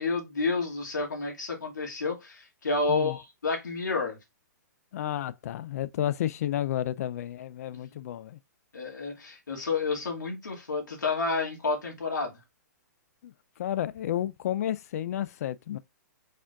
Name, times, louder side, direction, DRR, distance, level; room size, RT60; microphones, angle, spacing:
voice 1, 0.0-4.2 8.7-12.4, left 3 dB, 90° left, 2.4 m, -30 dB
voice 2, 4.9-8.4 13.2-15.8, left 11 dB, 55° left, 0.5 m, -31 dB
5.0 x 4.3 x 2.4 m
hypercardioid pair, 135°, 10 cm